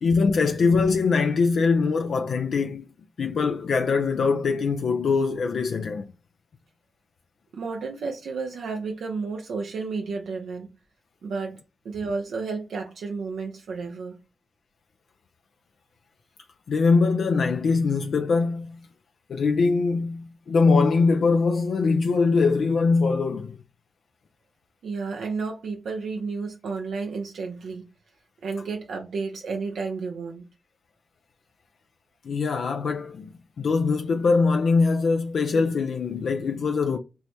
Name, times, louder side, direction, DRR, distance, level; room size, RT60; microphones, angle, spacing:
voice 1, 0.0-2.9 3.2-6.1 16.7-18.8 19.3-23.6 32.2-37.0, left 4 dB, 80° left, 0.3 m, -22 dB
voice 2, 7.5-10.7 11.2-11.6 11.8-14.2 24.8-27.9 28.4-30.4, right 4 dB, 90° right, 0.5 m, -32 dB
4.4 x 2.2 x 2.7 m
cardioid pair, 50°, 0 cm